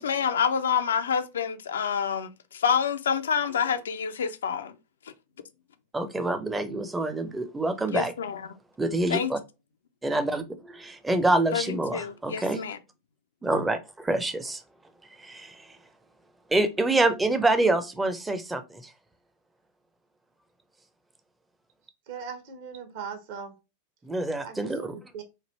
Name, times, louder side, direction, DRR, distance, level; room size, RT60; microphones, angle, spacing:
voice 1, 0.0-4.7 7.9-8.4 9.1-9.3 11.5-12.8, left 7 dB, 65° left, 0.4 m, -27 dB
voice 2, 5.9-8.1 8.8-9.4 10.0-12.6 13.4-14.6 15.2-15.7 16.5-18.9 24.0-24.9, right 2 dB, 10° right, 0.6 m, -26 dB
voice 3, 22.1-23.5 24.4-25.2, right 6 dB, 55° right, 1.0 m, -39 dB
3.2 x 2.5 x 4.1 m
figure-of-eight pair, 90°, 0 cm